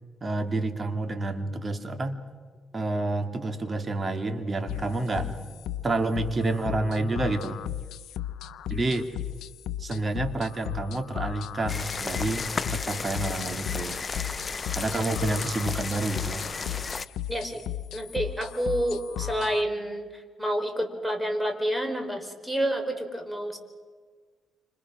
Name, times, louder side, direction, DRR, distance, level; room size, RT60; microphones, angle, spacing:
voice 1, 0.2-2.2 2.7-5.4 5.8-7.6 8.7-9.1 9.8-14.0 14.7-16.4, right 2 dB, 30° right, 7 dB, 2.7 m, -29 dB
sound 1, 4.7-19.6, left 12 dB, 80° left, 0.9 m, -36 dB
sound 2, 11.7-17.0, left 4 dB, 35° left, 0.8 m, -33 dB
voice 2, 17.3-17.6 17.9-23.6, right 1 dB, 5° right, 5 dB, 4.7 m, -29 dB
29.5 x 26.5 x 6.3 m, 1.5 s
cardioid pair, 90°, 0 cm